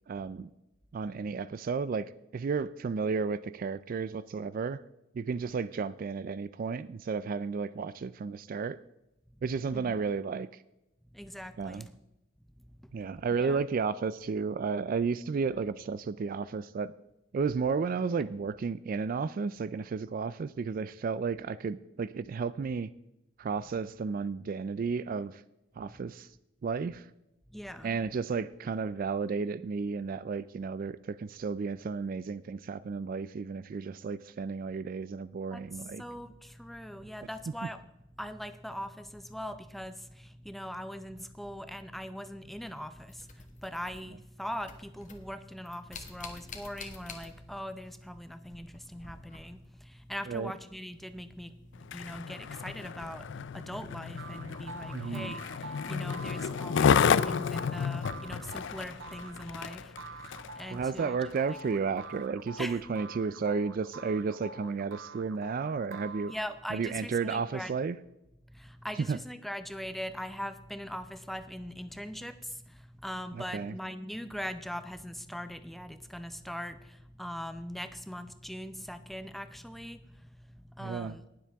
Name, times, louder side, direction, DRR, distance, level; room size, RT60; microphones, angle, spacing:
voice 1, 0.1-0.5 0.9-2.1 2.3-4.8 5.1-8.8 9.4-10.6 11.6-11.9 12.9-16.9 17.3-22.9 23.4-25.4 25.8-26.3 26.6-27.1 27.8-36.0 50.3-50.5 54.9-55.3 60.7-66.3 66.7-68.0 69.1-69.2 73.3-73.7 80.8-81.2, right 5 dB, 45° right, 16 dB, 0.3 m, -33 dB
voice 2, 9.7-10.1 11.0-12.0 12.5-13.6 15.5-15.6 25.9-26.1 27.5-28.0 35.5-37.9 38.2-61.2 61.5-61.6 62.6-62.8 66.3-67.7 68.4-81.2, equal, ahead, 10 dB, 0.6 m, -41 dB
sound 1, 42.7-44.3 44.6-47.8 48.0-49.8 51.7-51.8 52.6-52.8, left 4 dB, 40° left, 1.4 m, -49 dB
Skateboard, 51.8-60.6 61.2-61.3, left 6 dB, 65° left, 0.4 m, -31 dB
sound 2, 54.2-66.7, right 3 dB, 75° right, 1.0 m, -46 dB
19.5 x 7.4 x 3.4 m, 0.88 s
head